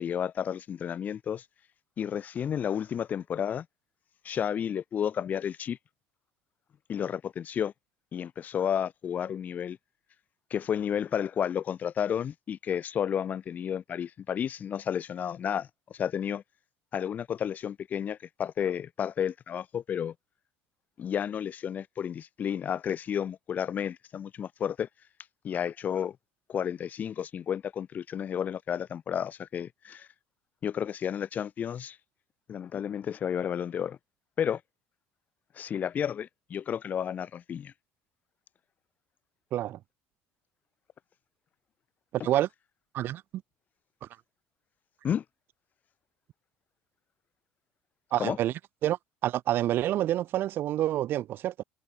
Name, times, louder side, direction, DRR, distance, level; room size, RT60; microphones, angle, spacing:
voice 1, 0.0-1.4 2.0-3.7 4.2-5.8 6.9-7.7 8.1-9.8 10.5-16.4 16.9-20.1 21.0-24.9 25.4-26.2 26.5-30.1 30.6-32.0 32.5-34.0 34.4-34.6 35.6-37.7 45.0-45.2 48.2-48.4, left 8 dB, 40° left, 4.0 m, -31 dB
voice 2, 48.1-48.5 48.8-51.6, right 13 dB, 55° right, 2.4 m, -28 dB
cardioid pair, 115°, 4 cm